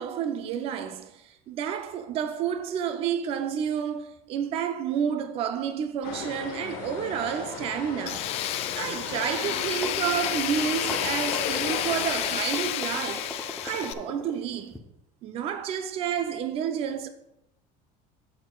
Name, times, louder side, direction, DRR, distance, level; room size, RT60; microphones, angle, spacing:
voice 1, 0.0-8.3 8.7-13.3 13.6-14.8 15.2-17.1, right 8 dB, 35° right, 0.5 m, -30 dB
sound 1, 6.0-12.4, left 6 dB, 60° left, 1.0 m, -36 dB
Tools, 8.1-13.9, left 12 dB, 40° left, 0.4 m, -31 dB
sound 2, 9.8-14.8, left 1 dB, ahead, 0.7 m, -40 dB
11.0 x 7.6 x 2.3 m
cardioid pair, 175°, 17 cm